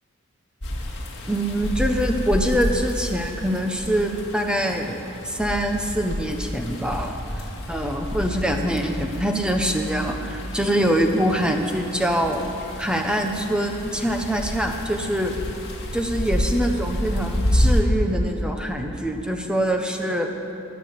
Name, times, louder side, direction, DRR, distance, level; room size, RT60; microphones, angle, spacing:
sound 1, 0.6-17.8, left 1 dB, 55° left, 2.3 m, -29 dB
voice 1, 1.3-5.0 5.2-12.5 12.8-15.3 15.9-20.3, equal, 5° right, 3 dB, 1.1 m, -24 dB
20.0 x 7.1 x 8.6 m, 2.8 s
head